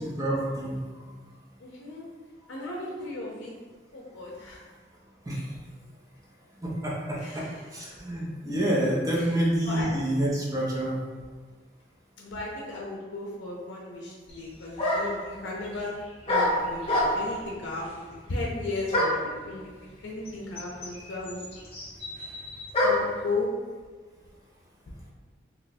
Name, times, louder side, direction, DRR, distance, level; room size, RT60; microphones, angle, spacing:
voice 1, 0.2-0.8 5.3-5.5 6.6-7.4 7.7-11.0, right 1 dB, 20° right, -5 dB, 0.7 m, -27 dB
voice 2, 1.6-2.1 2.5-3.5 3.9-4.6 7.2-7.7 9.1-9.3 9.7-9.9 12.2-15.9 16.3-19.7 20.0-21.4 22.8-23.5, left 2 dB, 80° left, -3 dB, 0.5 m, -35 dB
sound 1, 14.3-14.4 14.8-15.3 16.3-17.4 18.9-19.3 20.3-20.4 20.6-23.2, left 1 dB, 30° left, 0.7 m, -26 dB
2.9 x 2.2 x 4.0 m, 1.5 s
head